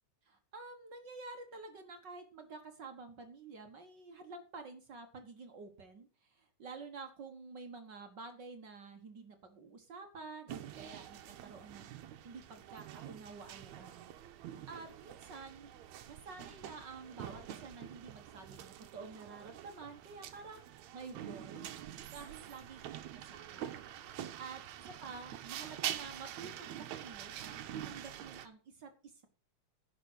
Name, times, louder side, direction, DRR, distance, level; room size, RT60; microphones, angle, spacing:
voice 1, 0.2-11.9 12.2-14.1 14.7-15.7 16.1-20.7 20.9-21.7 22.1-22.8 23.1-23.8 24.4-24.6 24.8-27.6 27.8-29.3, right 4 dB, 45° right, 6 dB, 1.5 m, -50 dB
sound 1, 10.5-28.5, right 11 dB, 70° right, 2.1 m, -46 dB
11.0 x 6.0 x 7.9 m, 0.36 s
omnidirectional pair, 3.6 m